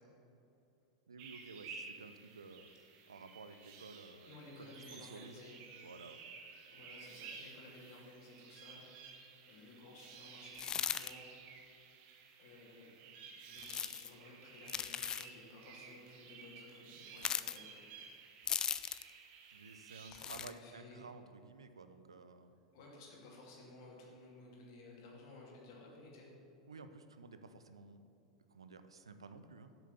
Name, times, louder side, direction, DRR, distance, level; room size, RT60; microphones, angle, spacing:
voice 1, 1.1-2.7 3.1-5.5 5.8-6.2 19.5-22.6 26.7-28.0 28.5-29.7, right 4 dB, 75° right, 10 dB, 0.6 m, -53 dB
sound 1, 1.2-20.1, right 5 dB, 45° right, 1.1 m, -54 dB
voice 2, 4.3-5.6 6.7-8.8 9.5-11.2 12.4-13.1 13.5-17.9 20.1-21.0 22.7-26.3, left 2 dB, 50° left, -3 dB, 2.6 m, -56 dB
sound 2, 10.5-11.1 13.6-14.1 14.7-15.3 17.2-17.6 18.5-19.1 20.1-20.5, left 8 dB, 25° left, 0.4 m, -38 dB
8.3 x 7.0 x 6.9 m, 2.8 s
figure-of-eight pair, 90°, 3 cm